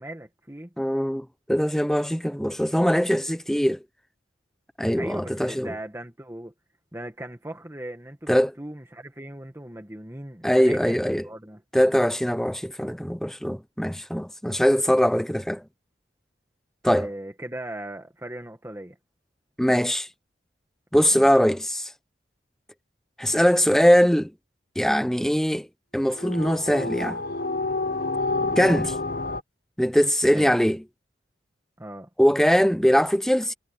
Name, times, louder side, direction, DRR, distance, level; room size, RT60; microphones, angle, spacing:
voice 1, 0.0-0.7 5.0-6.5 6.9-11.6 16.9-19.0 21.1-21.3 28.4-28.6 30.3-30.6 31.8-32.1, right 1 dB, 15° right, 1.7 m, -38 dB
voice 2, 0.8-3.8 4.8-5.7 8.3-8.5 10.4-11.3 11.7-15.6 16.8-17.1 19.6-20.1 20.9-21.9 23.2-24.3 24.8-25.7 25.9-27.2 28.6-28.9 29.8-30.8 32.2-33.5, equal, ahead, 0.7 m, -21 dB
sound 1, 26.1-29.4, left 3 dB, 50° left, 1.0 m, -28 dB
head